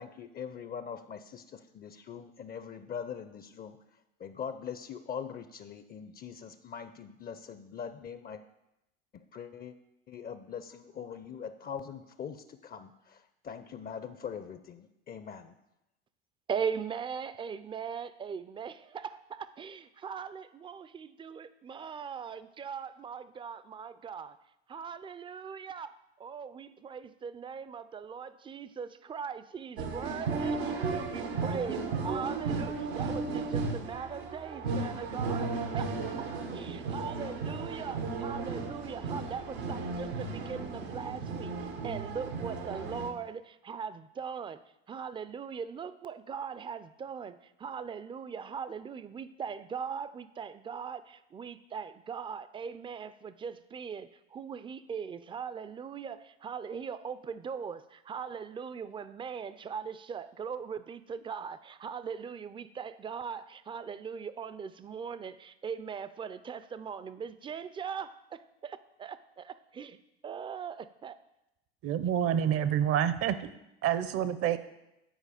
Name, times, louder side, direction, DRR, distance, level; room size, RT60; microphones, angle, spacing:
voice 1, 0.0-3.8 4.2-8.4 9.1-9.7 10.1-15.6, left 7 dB, 30° left, 11 dB, 0.5 m, -42 dB
voice 2, 16.5-24.4 24.7-35.9 36.5-41.5 41.8-70.0 70.2-71.2, right 6 dB, 15° right, 14 dB, 0.4 m, -40 dB
sound 1, 29.8-43.1, right 4 dB, 90° right, 1.1 m, -35 dB
voice 3, 71.8-73.5 73.8-74.6, right 9 dB, 50° right, 13 dB, 0.7 m, -28 dB
9.1 x 4.6 x 5.0 m, 0.88 s
hypercardioid pair, 85°, 30 cm